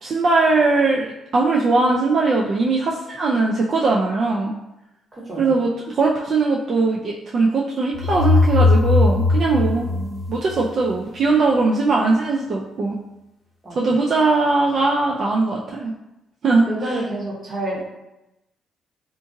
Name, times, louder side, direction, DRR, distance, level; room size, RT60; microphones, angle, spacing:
voice 1, 0.0-4.5 5.4-9.9 10.3-13.0 13.8-15.9 16.4-17.0, right 3 dB, 55° right, -3 dB, 0.3 m, -20 dB
sound 1, 7.9-10.8, left 3 dB, 30° left, 0.8 m, -18 dB
voice 2, 9.9-10.3 13.6-13.8 16.6-17.8, right 1 dB, 30° right, -4 dB, 0.8 m, -29 dB
2.7 x 2.4 x 2.6 m, 0.93 s
cardioid pair, 90°, 0 cm